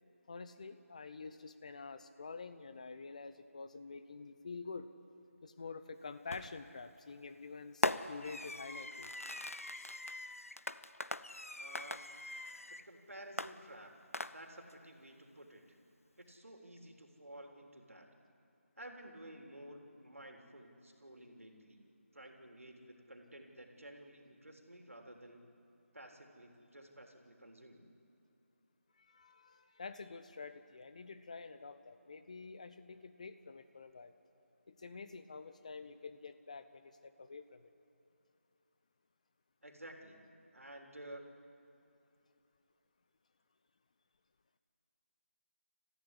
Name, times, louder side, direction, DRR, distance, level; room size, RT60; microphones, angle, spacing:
voice 1, 0.3-4.9 5.4-9.1 9.8-9.9 29.0-34.1 34.7-37.7, left 4 dB, 30° left, 11 dB, 0.9 m, -48 dB
Fireworks, 6.3-6.7 7.8-12.9 13.4-14.7, left 2 dB, 75° left, 0.9 m, -41 dB
voice 2, 11.6-12.0 12.7-13.9 14.2-15.8 16.2-18.1 18.8-21.8 22.1-25.4 25.9-27.8 39.6-40.2 40.5-41.2, right 1 dB, 70° right, 3 dB, 3.5 m, -53 dB
28.0 x 15.0 x 9.8 m, 2.7 s
figure-of-eight pair, 165°, 8 cm